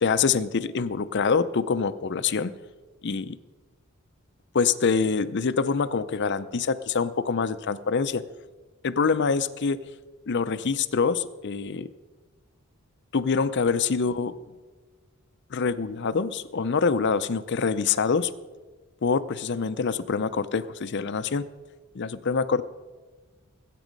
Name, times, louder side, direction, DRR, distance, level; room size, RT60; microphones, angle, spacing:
voice 1, 0.0-2.5 3.0-3.4 4.5-8.2 8.8-9.8 10.3-11.9 13.1-14.4 15.5-18.3 19.0-21.4 21.9-22.6, left 5 dB, 55° left, 13 dB, 0.6 m, -25 dB
20.0 x 8.4 x 5.2 m, 1.3 s
head